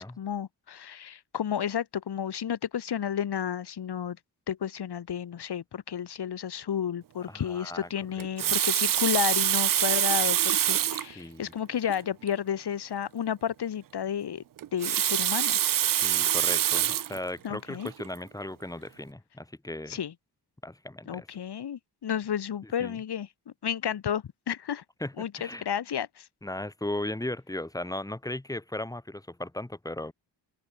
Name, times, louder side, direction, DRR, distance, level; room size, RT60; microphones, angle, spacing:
voice 1, 0.0-4.2 4.5-14.4 14.7-15.6 17.4-17.9 19.9-20.1 21.1-23.3 23.6-24.8 25.2-26.2, left 9 dB, 65° left, 6.4 m, -32 dB
voice 2, 7.3-7.9 8.1-8.5 11.1-11.5 15.9-20.0 20.6-21.3 22.6-23.0 25.0-25.7 26.4-30.1, left 1 dB, 10° left, 3.4 m, -37 dB
Water tap faucet, 8.2-11.1 11.9-12.0 12.3-12.4 14.6-17.2 17.9-18.1, right 11 dB, 50° right, 0.6 m, -25 dB
open air
wide cardioid pair, 180°, 42 cm